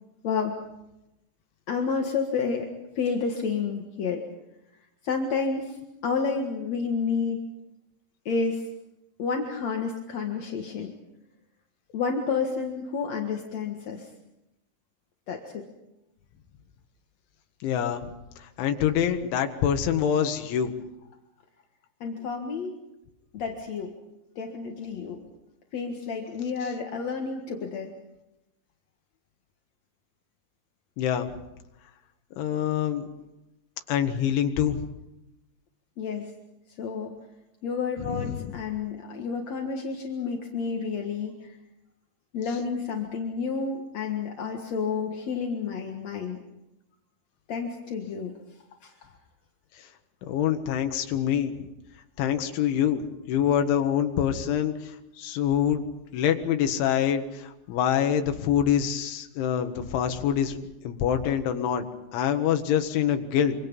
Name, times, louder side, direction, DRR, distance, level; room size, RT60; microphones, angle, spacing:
voice 1, 0.2-0.6 1.7-2.7 3.0-4.2 5.0-7.4 8.3-8.7 9.2-10.9 11.9-14.1 15.3-15.6 22.0-22.8 23.3-24.0 24.4-25.2 25.7-27.9 36.0-36.3 36.8-37.2 37.6-41.6 42.3-46.4 47.5-48.3 48.8-49.1, left 5 dB, 55° left, 2 dB, 2.0 m, -30 dB
voice 2, 17.6-18.1 18.4-20.7 31.0-31.3 32.4-33.1 33.9-34.8 38.0-38.5 50.2-51.6 52.2-55.8 56.1-61.9 62.1-63.6, left 9 dB, 80° left, 7 dB, 4.0 m, -25 dB
26.5 x 25.5 x 5.5 m, 0.92 s
omnidirectional pair, 5.4 m